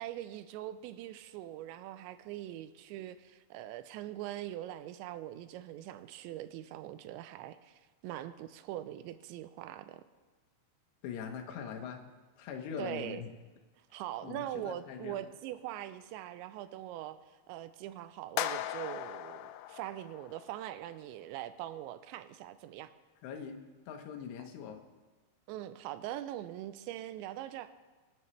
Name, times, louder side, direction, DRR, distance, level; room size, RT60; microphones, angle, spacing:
voice 1, 0.0-10.0 12.8-13.2 13.9-17.2 17.5-22.9 25.5-27.7, right 13 dB, 85° right, 12 dB, 2.9 m, -42 dB
voice 2, 11.0-12.0 12.4-13.3 14.2-15.3 23.2-23.6 23.9-24.8, left 7 dB, 75° left, 3 dB, 3.2 m, -42 dB
sound 1, 18.4-20.6, left 12 dB, 90° left, 3.0 m, -38 dB
25.5 x 9.8 x 3.3 m, 1.3 s
omnidirectional pair, 5.2 m